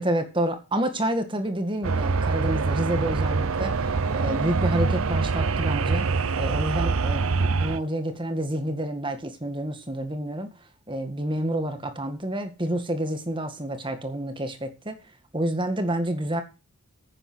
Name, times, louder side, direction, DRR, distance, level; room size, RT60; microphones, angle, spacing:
voice 1, 0.0-6.1 6.4-10.5 10.9-15.0 15.3-16.4, right 1 dB, 25° right, 1.9 m, -29 dB
sound 1, 1.8-7.8, right 4 dB, 85° right, 0.8 m, -24 dB
10.5 x 8.8 x 6.2 m
head